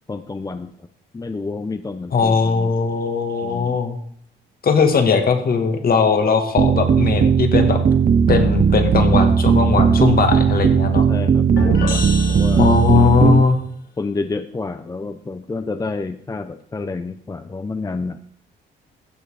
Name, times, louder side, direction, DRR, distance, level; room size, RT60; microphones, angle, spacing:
voice 1, 0.1-0.7 1.1-2.7 3.4-3.8 11.1-13.3 14.0-18.2, left 3 dB, 20° left, 10 dB, 0.6 m, -29 dB
voice 2, 2.1-4.0 4.6-7.8 8.3-11.0 12.6-13.6, left 5 dB, 50° left, 5 dB, 2.1 m, -18 dB
sound 1, 6.6-13.4, right 6 dB, 40° right, 0.7 m, -16 dB
sound 2, 11.6-13.3, left 3 dB, 80° left, 3.5 m, -28 dB
15.0 x 6.6 x 4.9 m, 0.65 s
cardioid pair, 90°, 20 cm